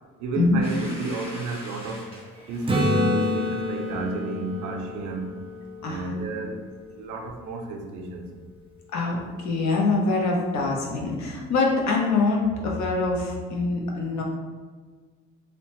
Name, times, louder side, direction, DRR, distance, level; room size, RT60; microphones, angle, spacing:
voice 1, 0.2-2.1 2.5-5.4 5.8-6.5 6.9-8.3, right 3 dB, 80° right, 2 dB, 0.5 m, -32 dB
Domestic sounds home sounds, 0.6-5.3, left 1 dB, 20° left, 0.9 m, -44 dB
Acoustic guitar / Strum, 2.7-6.4 11.3-11.4, left 1 dB, 20° right, 0.4 m, -28 dB
voice 2, 8.9-14.2, left 3 dB, 65° left, -1 dB, 0.7 m, -24 dB
2.8 x 2.1 x 2.9 m, 1.5 s
cardioid pair, 90°, 30 cm